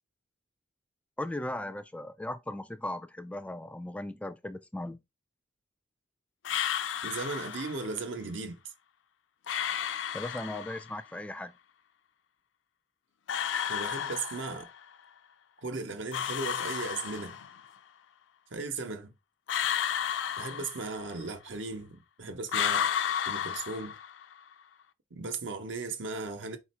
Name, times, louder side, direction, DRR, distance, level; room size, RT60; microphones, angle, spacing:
voice 1, 1.2-5.0 10.1-11.5 20.6-20.7, left 1 dB, 5° left, 0.3 m, -37 dB
sound 1, 6.4-7.9 9.5-10.9 13.3-14.8 16.1-17.7 19.5-21.2 22.5-24.3, left 9 dB, 75° left, 0.4 m, -32 dB
voice 2, 7.0-8.6 13.7-14.7 15.6-17.4 18.5-19.1 20.4-22.9 23.3-23.9 25.1-26.6, right 3 dB, 75° right, 0.8 m, -37 dB
4.2 x 2.5 x 4.2 m
head